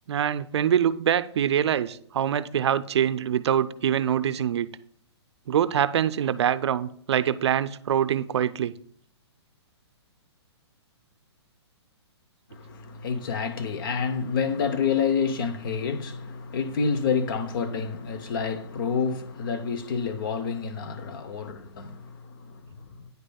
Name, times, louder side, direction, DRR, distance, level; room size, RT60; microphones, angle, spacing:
voice 1, 0.1-4.7 5.5-8.7, right 9 dB, 70° right, 0.4 m, -24 dB
voice 2, 12.5-23.1, left 5 dB, 50° left, 0.7 m, -28 dB
9.4 x 5.0 x 2.3 m
hypercardioid pair, 150°, 15 cm